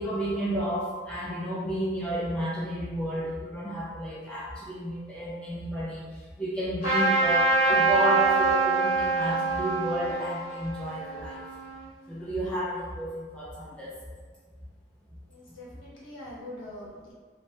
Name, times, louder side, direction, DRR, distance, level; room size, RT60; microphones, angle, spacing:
voice 1, 0.0-11.5 12.1-14.0, right 1 dB, 5° left, -8 dB, 0.3 m, -31 dB
Trumpet, 6.8-11.9, right 3 dB, 45° left, 1.4 m, -25 dB
voice 2, 15.3-17.1, left 1 dB, 75° left, -5 dB, 0.9 m, -43 dB
2.6 x 2.2 x 3.1 m, 1.5 s
head